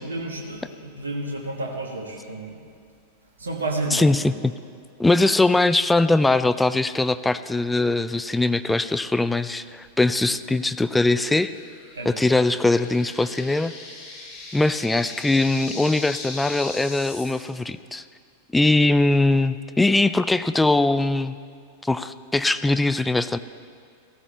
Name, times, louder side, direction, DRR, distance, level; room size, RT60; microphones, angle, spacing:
voice 1, 0.0-2.6 3.4-4.1 11.9-12.3, right 2 dB, 75° right, 0 dB, 1.7 m, -31 dB
voice 2, 3.9-4.5 5.0-11.5 12.1-13.7 14.5-18.0 18.5-21.4 21.8-23.4, left 2 dB, 5° left, 13 dB, 0.4 m, -21 dB
sound 1, 11.5-17.3, left 3 dB, 30° left, 3.9 m, -39 dB
15.5 x 15.0 x 3.3 m, 2.2 s
figure-of-eight pair, 90°, 0 cm